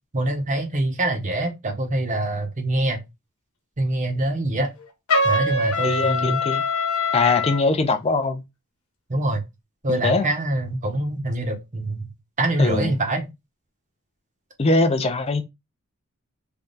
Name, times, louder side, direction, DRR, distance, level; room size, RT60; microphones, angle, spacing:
voice 1, 0.1-3.0 3.8-4.7 5.2-6.4 9.1-9.4 9.8-12.1 12.4-13.2, right 1 dB, 35° right, 0.8 m, -24 dB
Trumpet, 5.1-7.6, left 2 dB, 75° left, 1.0 m, -23 dB
voice 2, 5.8-6.6 7.1-8.4 9.9-10.3 12.6-12.9 14.6-15.4, left 3 dB, 30° left, 0.5 m, -22 dB
3.4 x 2.3 x 3.9 m
head